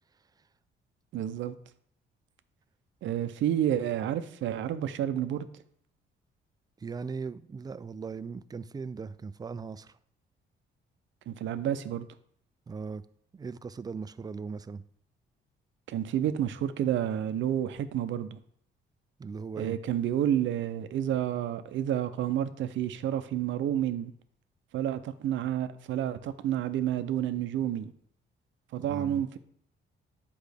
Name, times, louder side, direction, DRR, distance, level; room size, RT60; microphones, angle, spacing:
voice 1, 1.1-1.6 3.0-5.5 11.3-12.1 15.9-18.4 19.6-24.1 24.7-27.9 28.7-29.4, right 10 dB, 75° right, 0.6 m, -30 dB
voice 2, 6.8-10.0 12.7-13.0 13.3-14.8 19.2-19.8 28.9-29.2, right 5 dB, 20° right, 0.3 m, -38 dB
8.2 x 5.0 x 3.5 m
cardioid pair, 90°, 20 cm